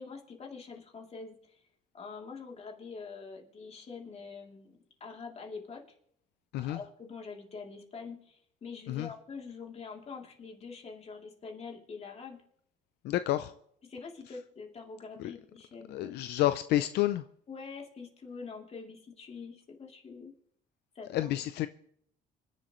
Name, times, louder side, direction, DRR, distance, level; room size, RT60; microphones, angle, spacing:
voice 1, 0.0-1.6 1.9-5.8 6.6-12.4 13.8-16.2 17.5-20.3 20.9-21.3, left 5 dB, 40° left, 1 dB, 3.1 m, -45 dB
voice 2, 13.0-13.5 15.2-15.3 15.9-17.2 21.1-21.7, left 14 dB, 75° left, 11 dB, 0.6 m, -29 dB
26.0 x 11.0 x 3.2 m, 0.68 s
cardioid pair, 110°, 17 cm